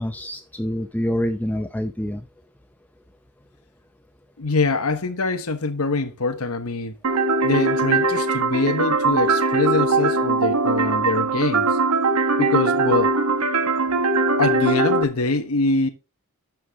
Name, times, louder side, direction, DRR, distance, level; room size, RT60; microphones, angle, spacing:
voice 1, 0.0-2.3, equal, 5° left, 0.6 m, -26 dB
voice 2, 4.4-6.9 7.4-11.8 12.4-13.1 14.4-15.9, left 3 dB, 70° left, 1.2 m, -24 dB
sound 1, 7.0-15.0, right 3 dB, 80° right, 1.3 m, -21 dB
11.5 x 7.5 x 3.5 m
head